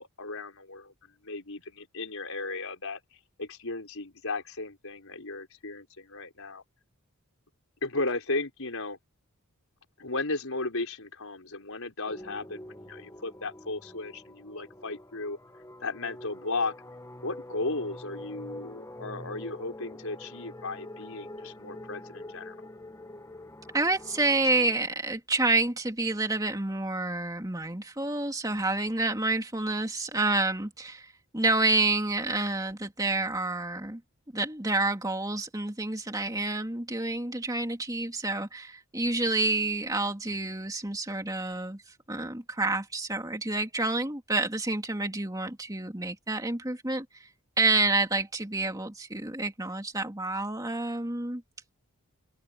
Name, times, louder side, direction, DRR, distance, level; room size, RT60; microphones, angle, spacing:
voice 1, 0.0-3.0 3.4-6.6 7.8-9.0 10.0-15.4 15.8-16.7 17.2-22.5, left 3 dB, 70° left, 5.0 m, -35 dB
sound 1, 12.1-24.7, left 1 dB, 15° left, 1.2 m, -45 dB
voice 2, 23.7-34.0 34.3-41.8 42.1-47.1 47.6-51.4, right 2 dB, 15° right, 2.4 m, -28 dB
open air
head